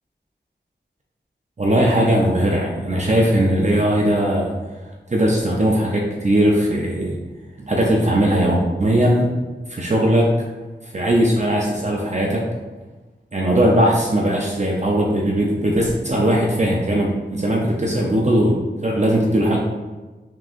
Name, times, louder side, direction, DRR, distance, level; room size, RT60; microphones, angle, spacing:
voice 1, 1.6-4.5 5.1-7.2 7.6-9.3 9.7-10.3 10.9-12.5 13.3-19.6, right 1 dB, 35° right, -2 dB, 0.6 m, -19 dB
4.6 x 3.6 x 2.5 m, 1.2 s
wide cardioid pair, 50°, 19 cm